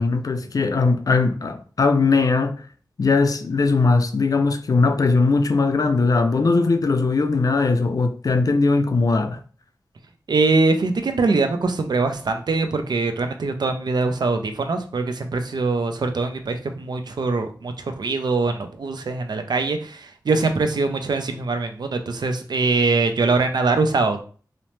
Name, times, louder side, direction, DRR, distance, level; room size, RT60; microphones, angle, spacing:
voice 1, 0.0-2.6 3.0-9.4, left 3 dB, 55° left, 0.4 m, -19 dB
voice 2, 10.3-24.2, right 3 dB, 75° right, 0.4 m, -22 dB
2.8 x 2.0 x 3.0 m
wide cardioid pair, 55°, 7 cm